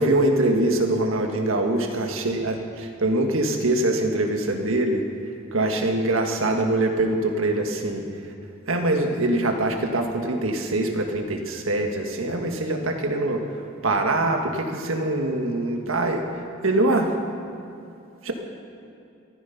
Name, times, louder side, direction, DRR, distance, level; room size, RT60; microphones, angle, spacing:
voice 1, 0.0-5.0 5.5-8.0 8.7-13.4 13.8-16.2 16.6-17.1 18.2-18.3, right 2 dB, 85° right, 3 dB, 1.6 m, -23 dB
14.0 x 13.5 x 5.9 m, 2.5 s
head